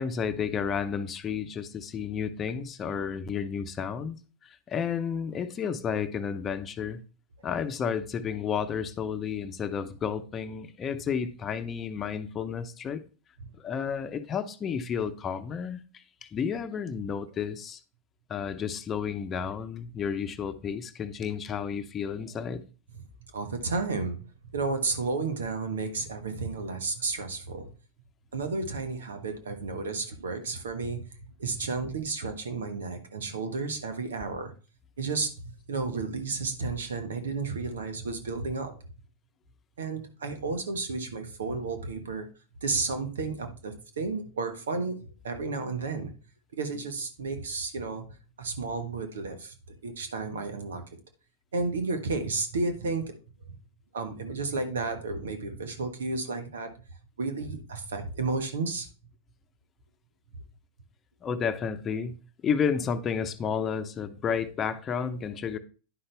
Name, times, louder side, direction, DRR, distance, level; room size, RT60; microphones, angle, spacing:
voice 1, 0.0-4.2 4.4-7.0 7.4-13.0 13.6-17.8 18.3-22.6 61.2-62.1 62.4-65.6, left 7 dB, 30° left, 0.8 m, -31 dB
voice 2, 23.3-24.3 24.5-27.7 28.3-31.0 31.4-34.5 35.0-38.8 39.8-42.3 42.6-45.0 45.2-46.1 46.5-48.1 48.4-49.5 49.8-50.8 51.5-53.1 53.9-56.7 57.2-58.9, right 3 dB, 85° right, 1.3 m, -32 dB
10.0 x 5.6 x 3.4 m
hypercardioid pair, 105°, 0 cm